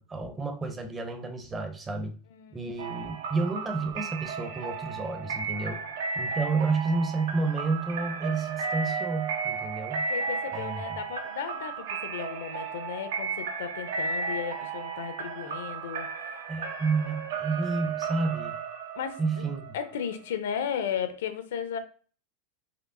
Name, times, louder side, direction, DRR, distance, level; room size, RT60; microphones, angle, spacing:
voice 1, 0.0-2.2 2.5-5.8 6.1-10.1 10.5-11.0 16.5-18.6 19.2-19.8, right 3 dB, 15° right, 0.5 m, -30 dB
voice 2, 2.3-2.9 5.5-6.0 10.1-16.4 19.0-19.5 19.7-21.8, left 8 dB, 80° left, 0.6 m, -35 dB
sound 1, 2.8-20.4, right 5 dB, 90° right, 0.7 m, -34 dB
4.3 x 3.0 x 2.6 m
supercardioid pair, 160°, 0 cm